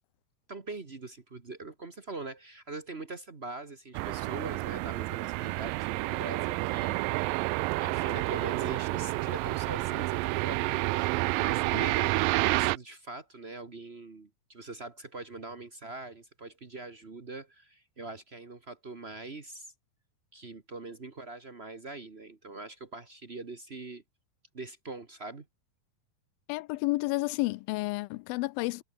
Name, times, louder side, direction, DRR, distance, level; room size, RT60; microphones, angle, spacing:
voice 1, 0.5-7.4 7.8-11.1 11.4-19.7 20.3-24.0 24.5-25.4, right 3 dB, 55° right, 0.6 m, -42 dB
sound 1, 3.9-12.8, right 22 dB, 80° right, 2.1 m, -29 dB
voice 2, 26.5-28.8, left 21 dB, 85° left, 2.3 m, -31 dB
omnidirectional pair, 4.1 m